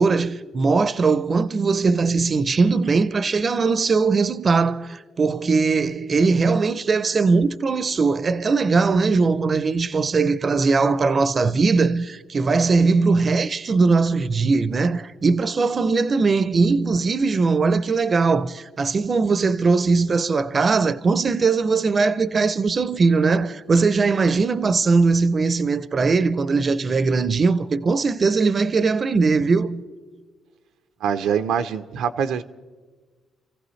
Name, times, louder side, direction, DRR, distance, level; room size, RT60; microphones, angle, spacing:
voice 1, 0.0-29.8, right 4 dB, 40° right, 0.5 m, -20 dB
voice 2, 31.0-32.4, right 7 dB, 85° right, 0.6 m, -24 dB
28.5 x 15.0 x 3.2 m
cardioid pair, 90°, 0 cm